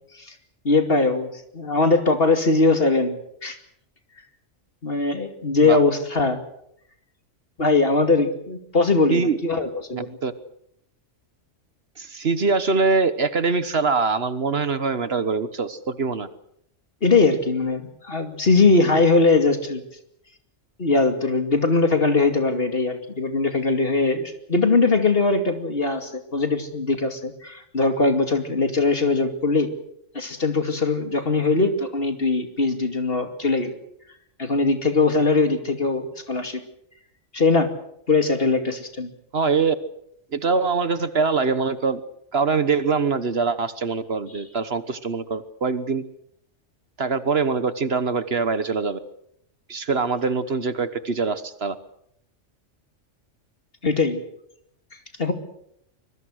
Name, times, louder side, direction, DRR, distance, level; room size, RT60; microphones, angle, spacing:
voice 1, 0.6-3.6 4.8-6.4 7.6-10.2 17.0-19.8 20.8-29.7 30.1-33.7 34.4-36.6 37.3-37.7 38.1-39.1 53.8-54.2 55.2-55.3, left 3 dB, 50° left, 7 dB, 2.7 m, -21 dB
voice 2, 9.9-10.3 12.0-16.3 39.3-39.7 40.3-42.0 42.3-46.0 47.0-49.0 49.7-51.8, right 4 dB, 55° right, 13 dB, 1.4 m, -23 dB
25.0 x 22.5 x 6.5 m, 0.72 s
omnidirectional pair, 1.3 m